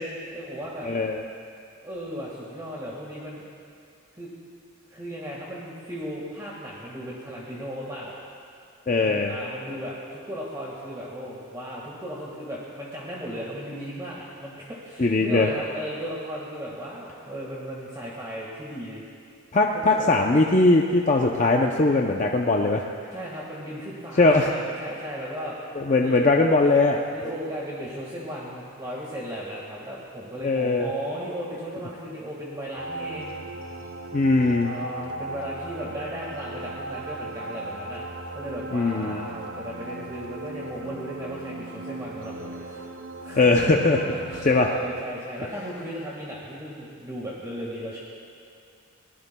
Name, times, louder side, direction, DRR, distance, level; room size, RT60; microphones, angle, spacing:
voice 1, 0.3-0.9 1.8-3.4 4.2-4.3 4.9-8.1 9.0-19.0 19.7-20.0 23.1-25.6 26.0-26.3 27.1-33.4 34.6-38.0 38.3-42.8 43.2-43.4 43.7-48.0, equal, 20° right, -5 dB, 1.7 m, -36 dB
voice 2, 0.8-1.2 8.9-9.3 15.0-15.5 19.5-22.9 24.2-24.5 25.8-27.0 30.4-30.9 34.1-34.7 38.7-39.3 43.4-44.0 44.5-44.7, left 3 dB, 35° left, 1 dB, 0.6 m, -20 dB
sound 1, 32.8-45.0, right 2 dB, 70° right, 0.8 m, -37 dB
22.0 x 18.5 x 2.3 m, 2.4 s
head